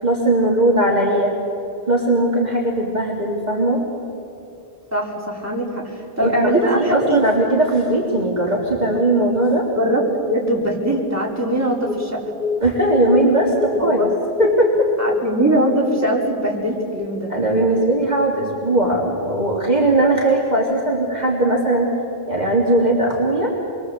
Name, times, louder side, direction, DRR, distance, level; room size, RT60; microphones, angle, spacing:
voice 1, 0.0-1.3 1.9-3.8 6.2-9.7 12.6-14.1 14.4-14.9 17.3-21.9 22.3-23.5, right 1 dB, 40° right, -3 dB, 3.3 m, -19 dB
voice 2, 4.9-7.2 9.8-10.0 10.3-12.2 13.7-14.1 15.0-17.3, right 1 dB, 15° right, -3 dB, 4.8 m, -21 dB
sound 1, 8.6-15.4, left 5 dB, 50° left, 1.5 m, -27 dB
28.5 x 23.5 x 8.1 m, 2.7 s
omnidirectional pair, 1.1 m